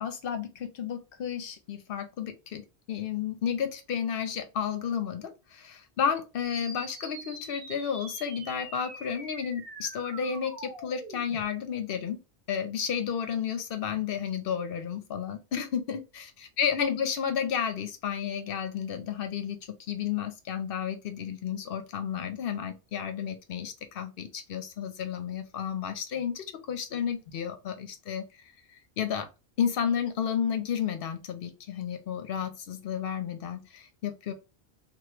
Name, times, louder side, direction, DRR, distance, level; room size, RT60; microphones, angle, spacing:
voice 1, 0.0-12.2 12.5-28.2 29.0-29.3 29.6-34.3, left 8 dB, 65° left, 7 dB, 0.8 m, -32 dB
sound 1, 6.4-11.4, right 2 dB, 50° right, 1.0 m, -45 dB
2.9 x 2.4 x 3.2 m, 0.28 s
omnidirectional pair, 1.1 m